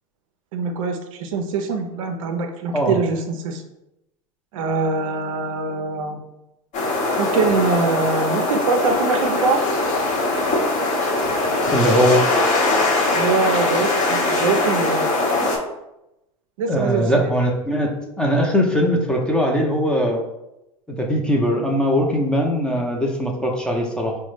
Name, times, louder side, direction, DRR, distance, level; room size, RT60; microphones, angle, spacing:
voice 1, 0.5-3.6 4.5-6.2 7.2-9.6 13.1-15.1 16.6-17.3, right 4 dB, 70° right, 5 dB, 0.5 m, -23 dB
sound 1, 6.7-15.6, left 2 dB, 40° left, 1.0 m, -21 dB
voice 2, 11.7-12.2 16.7-20.2 20.9-24.2, equal, 5° left, 0 dB, 0.7 m, -20 dB
3.8 x 2.2 x 3.2 m, 0.90 s
hypercardioid pair, 85°, 18 cm